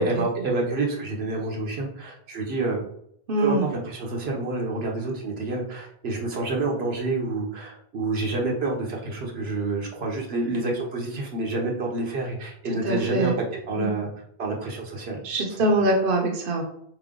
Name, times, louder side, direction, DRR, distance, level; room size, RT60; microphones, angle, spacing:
voice 1, 0.0-2.8 3.4-13.3 13.7-14.1 14.4-15.2 15.6-15.7, right 2 dB, 80° right, 0 dB, 1.2 m, -28 dB
voice 2, 3.3-3.7 12.8-13.4 13.7-13.9 15.2-16.6, right 2 dB, 65° right, 1 dB, 0.9 m, -23 dB
4.3 x 3.2 x 3.7 m, 0.71 s
omnidirectional pair, 1.0 m